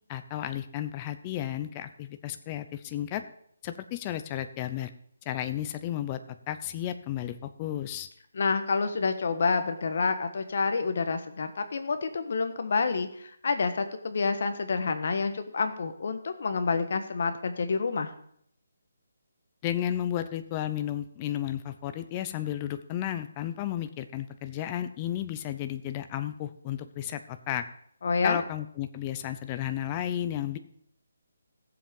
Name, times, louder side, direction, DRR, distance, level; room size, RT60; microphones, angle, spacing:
voice 1, 0.1-3.2 3.6-4.9 5.3-6.2 6.5-8.1 19.6-27.6 28.2-30.6, left 11 dB, 15° left, 9 dB, 0.6 m, -33 dB
voice 2, 8.3-18.1 28.0-28.4, left 4 dB, 50° left, 8 dB, 1.4 m, -28 dB
15.5 x 7.4 x 5.3 m, 0.67 s
hypercardioid pair, 175°, 0 cm